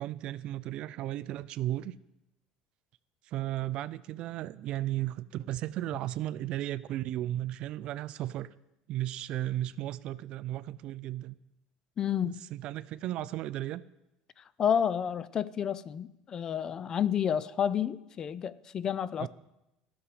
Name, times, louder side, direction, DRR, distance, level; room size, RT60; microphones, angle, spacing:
voice 1, 0.0-2.0 3.3-8.5 8.9-11.4 12.2-13.8 19.2-19.3, right 14 dB, 50° right, 0.3 m, -35 dB
voice 2, 12.0-12.4 14.6-19.3, left 8 dB, 30° left, 0.3 m, -30 dB
14.0 x 6.3 x 4.9 m
cardioid pair, 135°, 2 cm